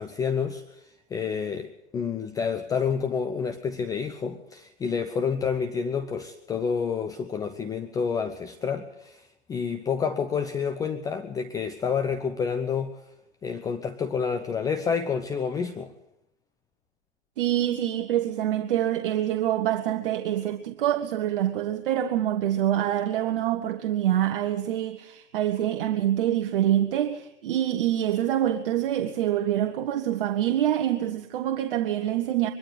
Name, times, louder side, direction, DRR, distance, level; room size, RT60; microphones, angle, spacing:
voice 1, 0.0-13.0 13.4-15.9, left 6 dB, 10° left, 0.8 m, -29 dB
voice 2, 17.4-32.5, right 12 dB, 50° right, 1.5 m, -26 dB
23.5 x 12.5 x 9.9 m
hypercardioid pair, 135°, 34 cm